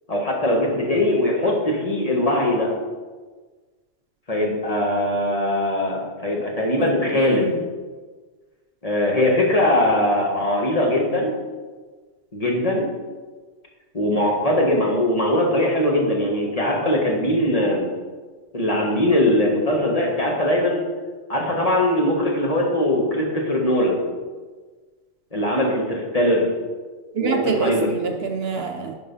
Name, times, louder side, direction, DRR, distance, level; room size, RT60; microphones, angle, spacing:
voice 1, 0.1-2.7 4.3-7.5 8.8-11.4 12.3-12.9 13.9-17.9 18.5-20.8 21.3-24.0 25.3-26.5 27.2-27.9, left 1 dB, 30° left, -1 dB, 1.4 m, -21 dB
voice 2, 7.1-7.6 27.1-29.0, right 5 dB, 60° right, 4 dB, 0.8 m, -26 dB
10.5 x 3.9 x 5.4 m, 1.4 s
omnidirectional pair, 1.2 m